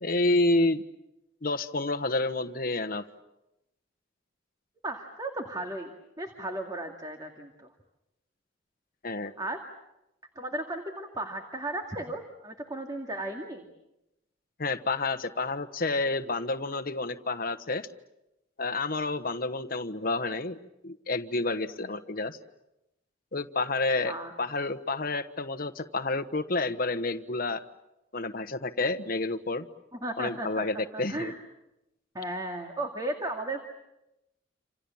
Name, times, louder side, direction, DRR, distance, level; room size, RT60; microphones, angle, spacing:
voice 1, 0.0-0.8 1.4-3.0 9.0-9.3 14.6-17.9 18.6-22.4 23.3-27.6 28.1-29.7 30.2-31.3, left 2 dB, 50° left, 10 dB, 1.3 m, -29 dB
voice 2, 4.8-5.9 6.2-7.7 9.4-9.6 10.4-13.6 24.0-24.3 30.0-30.6 30.9-31.4 32.1-33.6, right 1 dB, 20° right, 3 dB, 2.2 m, -35 dB
27.5 x 27.5 x 7.2 m, 0.91 s
head